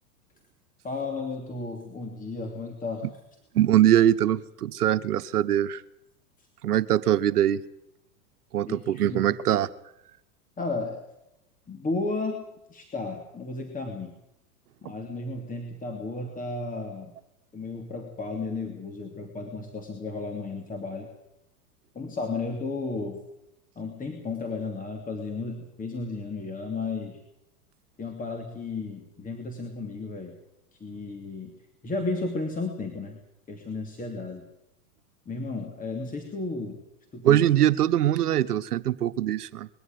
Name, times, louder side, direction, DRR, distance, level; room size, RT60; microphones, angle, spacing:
voice 1, 0.8-3.1 8.7-9.2 10.6-11.0 11.7-12.4 12.7-14.1 14.8-17.1 17.5-21.1 21.9-23.2 23.7-27.2 28.0-30.4 30.7-31.5 31.8-33.2 33.5-34.5 35.2-36.8 37.1-37.5, left 3 dB, 15° left, 4 dB, 3.1 m, -33 dB
voice 2, 3.5-5.8 6.6-7.6 8.5-9.7 37.2-39.7, right 12 dB, 80° right, 13 dB, 1.2 m, -22 dB
21.5 x 14.0 x 9.5 m, 0.85 s
hypercardioid pair, 110°, 45 cm